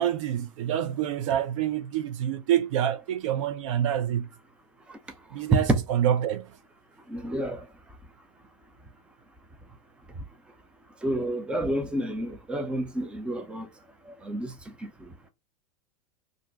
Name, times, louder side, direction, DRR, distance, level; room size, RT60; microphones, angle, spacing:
voice 1, 0.0-4.3 5.3-6.5, right 10 dB, 60° right, 0.5 m, -27 dB
voice 2, 7.1-7.6 11.0-13.7 14.2-14.5 14.8-14.9, right 2 dB, 5° right, 0.5 m, -28 dB
2.5 x 2.1 x 3.8 m
figure-of-eight pair, 90°, 19 cm